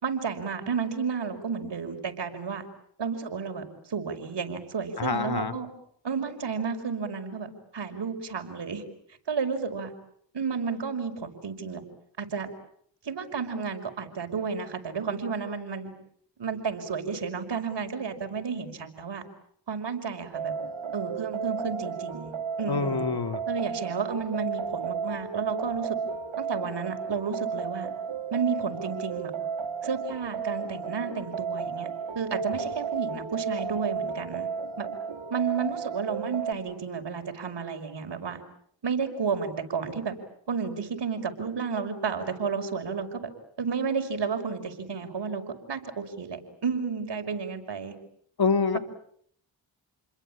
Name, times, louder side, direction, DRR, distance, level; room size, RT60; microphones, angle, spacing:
voice 1, 0.0-2.6 3.0-5.7 6.0-8.8 9.3-9.9 10.3-11.8 12.2-12.5 13.0-15.9 16.4-19.2 19.7-20.5 20.9-22.3 22.6-23.0 23.5-26.0 26.4-27.9 28.3-29.3 29.8-31.9 32.1-34.5 34.8-34.9 35.3-38.4 38.8-40.1 40.5-43.2 43.6-45.4 45.7-47.9 48.7-48.8, right 5 dB, 60° right, 5 dB, 5.6 m, -32 dB
voice 2, 5.0-5.5 22.7-23.4 48.4-48.8, left 5 dB, 55° left, 9 dB, 2.9 m, -26 dB
sound 1, 20.3-36.5, right 6 dB, 80° right, 3.5 m, -33 dB
29.5 x 22.0 x 8.8 m, 0.67 s
cardioid pair, 55°, 46 cm